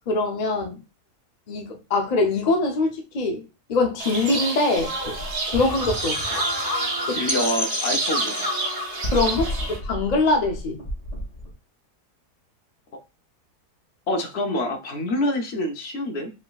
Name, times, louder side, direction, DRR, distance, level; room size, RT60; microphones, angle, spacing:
voice 1, 0.1-0.8 1.5-3.4 3.7-5.2 5.5-6.2 7.1-7.2 9.1-10.8, left 3 dB, 80° left, 0.3 m, -23 dB
sound 1, 4.0-9.8, right 3 dB, 75° right, 1.5 m, -29 dB
sound 2, 4.8-11.5, left 1 dB, 30° left, 1.9 m, -30 dB
voice 2, 7.1-8.5 12.9-13.0 14.1-16.3, left 1 dB, 50° left, 0.8 m, -26 dB
5.1 x 3.5 x 2.3 m
omnidirectional pair, 1.7 m